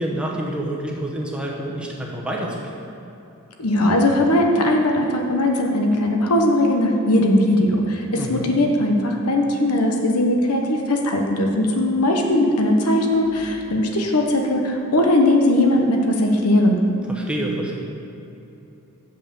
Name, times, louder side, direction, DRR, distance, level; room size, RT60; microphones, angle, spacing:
voice 1, 0.0-2.7 8.2-8.5 17.1-17.7, right 1 dB, 5° right, -2 dB, 1.0 m, -28 dB
voice 2, 3.6-16.8, left 1 dB, 85° left, 2 dB, 1.1 m, -19 dB
7.4 x 5.8 x 6.8 m, 2.9 s
head